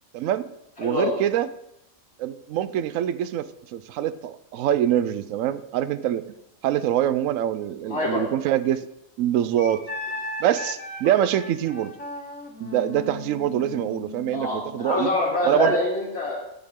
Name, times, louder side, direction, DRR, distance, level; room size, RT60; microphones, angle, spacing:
voice 1, 0.1-0.4 0.8-1.5 2.2-6.2 6.6-8.9 9.2-9.8 10.4-11.9 12.6-15.1 15.4-15.8, right 11 dB, 75° right, 15 dB, 1.0 m, -24 dB
voice 2, 0.8-1.2 7.8-8.2 14.3-16.4, left 2 dB, 50° left, -6 dB, 2.4 m, -25 dB
Wind instrument woodwind instrument, 9.6-14.9, left 2 dB, 80° left, 2.4 m, -36 dB
17.5 x 7.1 x 3.7 m, 0.84 s
omnidirectional pair, 1.4 m